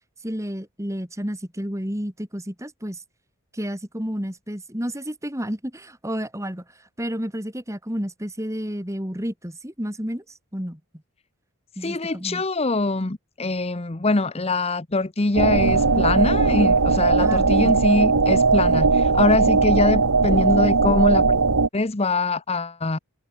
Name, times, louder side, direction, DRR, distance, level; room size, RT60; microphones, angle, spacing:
voice 1, 0.2-3.0 3.5-6.6 7.0-10.2 10.5-10.8 11.8-12.4 17.2-17.7, equal, 15° right, 3.9 m, -31 dB
voice 2, 11.8-21.4 21.7-23.0, left 2 dB, 25° left, 0.9 m, -23 dB
sound 1, 15.3-21.7, right 4 dB, 90° right, 1.5 m, -18 dB
head